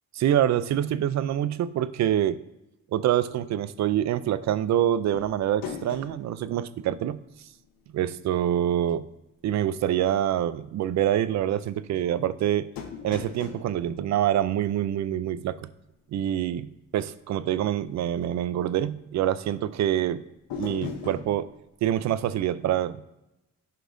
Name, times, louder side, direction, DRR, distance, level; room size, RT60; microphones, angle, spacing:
voice 1, 0.2-2.4 2.9-7.2 7.9-9.1 9.4-12.7 13.0-15.7 16.1-20.2 20.6-21.5 21.8-23.0, right 11 dB, 55° right, 15 dB, 0.4 m, -26 dB
sound 1, 5.1-7.8 8.0-8.1 12.8-15.3 20.5-21.4, left 7 dB, 85° left, 1.2 m, -40 dB
11.5 x 5.3 x 2.6 m, 0.90 s
cardioid pair, 115°, 33 cm